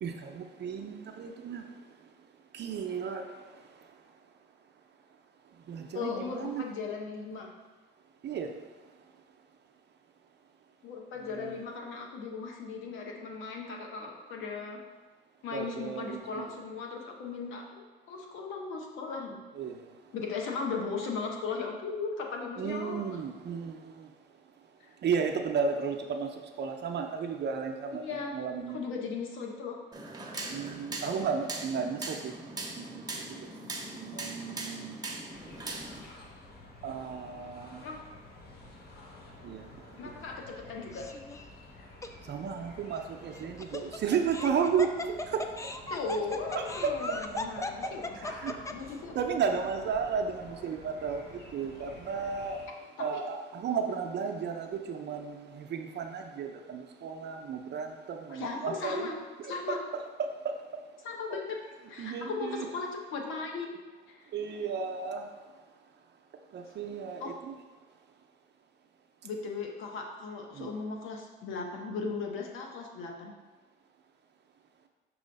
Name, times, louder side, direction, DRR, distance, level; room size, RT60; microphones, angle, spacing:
voice 1, 0.0-1.7 2.5-3.8 5.7-6.7 8.2-8.5 11.2-11.6 15.5-16.5 19.5-19.9 22.6-24.1 25.0-28.8 30.5-32.4 32.8-33.5 33.9-35.0 36.8-37.8 39.4-40.2 42.2-45.8 46.5-47.4 47.8-48.6 49.1-59.1 59.4-60.8 61.3-61.4 62.0-62.7 64.3-65.3 66.5-67.6 70.5-70.7, right 6 dB, 60° right, 4 dB, 0.6 m, -34 dB
voice 2, 5.9-7.5 10.8-14.8 15.4-19.4 20.1-23.2 24.8-24.9 28.0-28.3 28.7-29.8 37.8-38.0 40.0-41.1 45.9-49.1 53.0-53.2 58.3-59.2 59.5-59.8 61.0-61.6 61.9-63.8 64.1-64.3 67.2-67.4 69.2-73.3, left 4 dB, 85° left, 1 dB, 1.0 m, -37 dB
sound 1, 29.9-36.0, right 2 dB, 20° right, 0.9 m, -40 dB
sound 2, 35.3-52.7, left 2 dB, 50° left, 1.1 m, -51 dB
Laughter, 40.9-41.4 42.0-42.1 43.3-48.9, left 2 dB, 15° left, 0.4 m, -38 dB
6.2 x 3.1 x 5.2 m, 1.3 s
cardioid pair, 90°, 20 cm